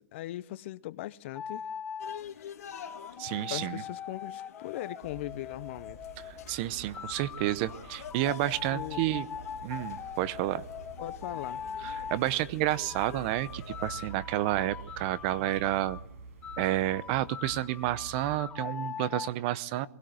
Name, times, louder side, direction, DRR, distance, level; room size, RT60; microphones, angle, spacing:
voice 1, 0.0-1.7 3.5-6.1 8.7-9.0 11.0-11.6, left 15 dB, 45° left, 0.8 m, -39 dB
sound 1, 1.4-2.2 2.7-6.4 6.9-12.2 12.7-16.0 16.4-19.3, left 7 dB, 15° left, 0.8 m, -42 dB
sound 2, 2.0-14.0, left 9 dB, 65° left, 2.1 m, -48 dB
voice 2, 3.2-3.8 6.3-9.3 9.6-10.6 11.8-16.0 16.6-19.9, right 15 dB, 40° right, 0.7 m, -30 dB
sound 3, 5.0-18.4, right 4 dB, 55° right, 7.0 m, -48 dB
21.5 x 17.0 x 7.8 m
hypercardioid pair, 140°, 9 cm